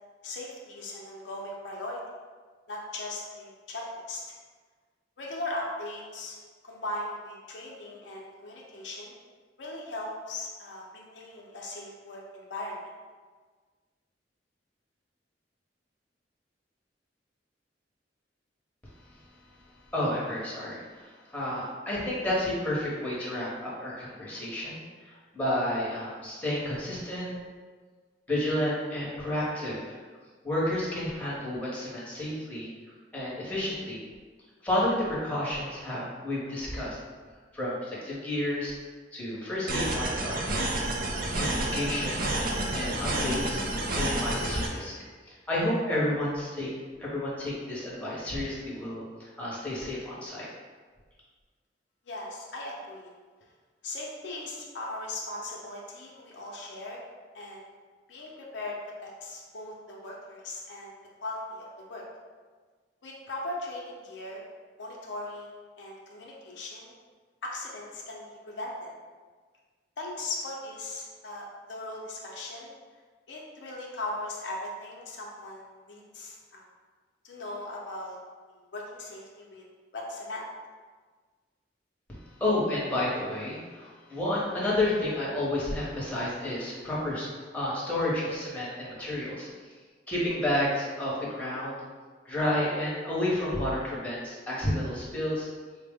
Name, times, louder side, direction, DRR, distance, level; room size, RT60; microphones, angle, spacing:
voice 1, 0.2-2.0 2.7-4.2 5.2-6.4 6.6-9.2 9.6-12.8 52.1-53.1 53.8-57.1 57.3-57.7 58.1-60.9 61.2-62.0 63.0-64.5 64.8-66.9 67.4-68.9 70.0-72.7 73.3-76.7 77.2-78.2 78.7-79.7 79.9-80.4, left 2 dB, 75° left, -3 dB, 0.6 m, -38 dB
voice 2, 19.9-27.3 28.3-30.0 30.4-32.7 33.1-34.0 34.6-37.0 37.5-38.7 39.1-40.4 41.4-42.3 42.7-43.6 43.9-44.9 45.3-46.7 47.0-50.5 82.4-87.3 87.5-89.5 90.1-91.8 92.2-95.5, left 1 dB, 10° left, -7 dB, 0.9 m, -31 dB
sound 1, 39.7-44.7, right 1 dB, 55° right, 0.5 m, -29 dB
4.1 x 2.1 x 3.5 m, 1.5 s
head